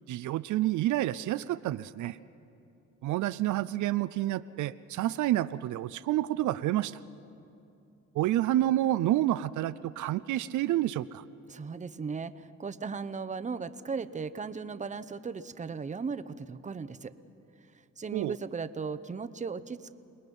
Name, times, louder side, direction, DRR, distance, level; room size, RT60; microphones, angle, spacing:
voice 1, 0.1-2.2 3.0-7.0 8.1-11.2 18.1-18.4, right 14 dB, 75° right, 14 dB, 0.5 m, -29 dB
voice 2, 11.5-17.1 18.0-19.9, right 5 dB, 25° right, 12 dB, 0.8 m, -37 dB
28.5 x 19.5 x 5.4 m, 2.7 s
cardioid pair, 90°, 30 cm